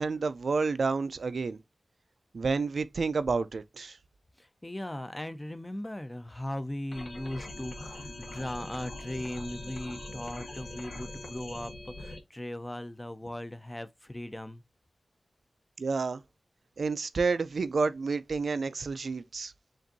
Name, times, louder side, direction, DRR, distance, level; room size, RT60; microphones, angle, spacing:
voice 1, 0.0-1.6 2.3-4.0 15.8-16.2 16.8-19.5, right 4 dB, 80° right, 0.4 m, -29 dB
voice 2, 4.4-14.6, left 1 dB, 20° left, 0.6 m, -38 dB
sound 1, 6.9-12.2, left 2 dB, 90° left, 1.1 m, -42 dB
7.3 x 2.6 x 2.6 m
wide cardioid pair, 60°, 0 cm